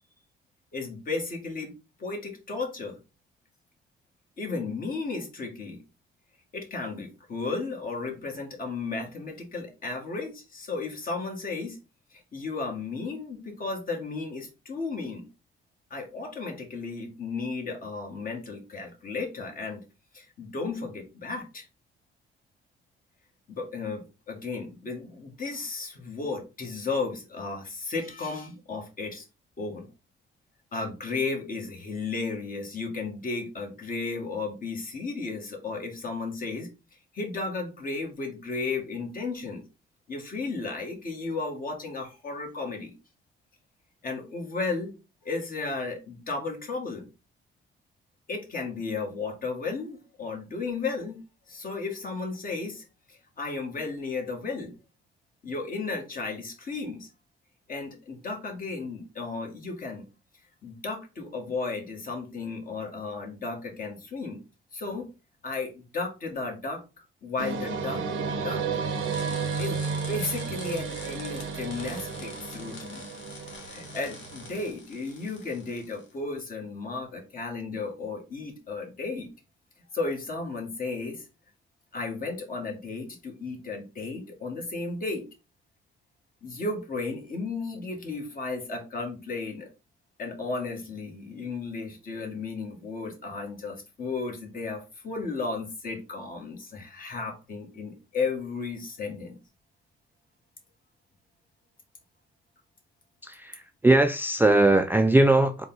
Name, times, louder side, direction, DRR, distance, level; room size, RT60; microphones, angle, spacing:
voice 1, 0.7-1.7 2.0-3.0 4.4-5.8 6.5-11.8 12.1-15.2 15.9-19.8 20.1-21.7 23.5-29.2 29.6-29.9 30.7-39.6 40.1-42.9 44.0-44.9 45.2-47.1 48.3-51.2 51.5-54.7 55.4-57.1 57.7-60.1 60.6-64.4 64.7-65.0 65.4-66.8 67.2-68.0 68.3-68.6 69.6-69.8 70.1-73.1 73.7-79.3 79.9-81.3 81.9-85.2 86.4-89.7 90.2-99.4, left 3 dB, 45° left, 1.5 m, -34 dB
sound 1, 67.4-74.7, right 5 dB, 80° right, 0.7 m, -33 dB
sound 2, 68.9-76.1, left 4 dB, 75° left, 1.4 m, -46 dB
voice 2, 103.2-105.7, right 2 dB, 10° right, 0.3 m, -20 dB
3.9 x 2.3 x 3.8 m
cardioid pair, 90°, 20 cm